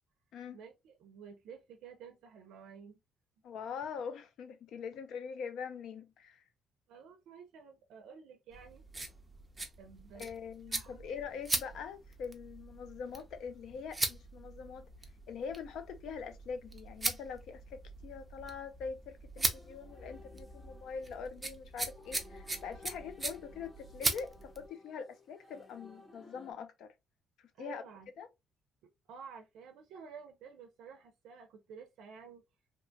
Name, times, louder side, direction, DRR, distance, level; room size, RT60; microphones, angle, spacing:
voice 1, 0.5-3.0 6.9-8.8 9.8-10.3 10.7-11.1 27.5-28.1 28.8-32.4, right 6 dB, 85° right, 0.5 m, -52 dB
voice 2, 3.4-6.4 10.1-14.9 15.3-26.9 27.4-27.8 28.2-28.3, left 6 dB, 70° left, 0.5 m, -43 dB
sound 1, 8.5-24.7, right 2 dB, 15° right, 0.4 m, -40 dB
sound 2, 19.4-26.5, left 3 dB, 15° left, 0.8 m, -57 dB
2.8 x 2.2 x 2.6 m
cardioid pair, 155°, 0 cm